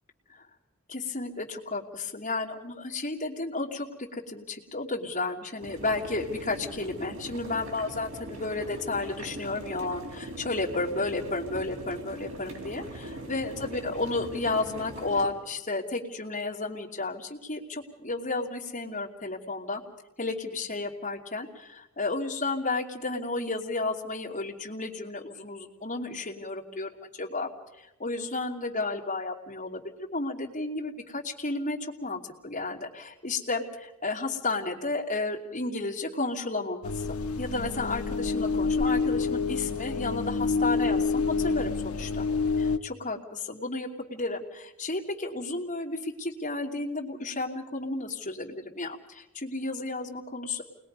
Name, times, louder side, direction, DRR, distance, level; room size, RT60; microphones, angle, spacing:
voice 1, 0.9-19.8 20.2-27.5 27.8-37.0 37.4-42.2 42.8-50.6, left 3 dB, 35° left, -2 dB, 2.8 m, -32 dB
sound 1, 5.6-15.3, right 1 dB, 70° right, 3.9 m, -41 dB
sound 2, 36.8-42.8, left 4 dB, 80° left, 0.9 m, -28 dB
29.0 x 21.0 x 5.4 m, 0.93 s
head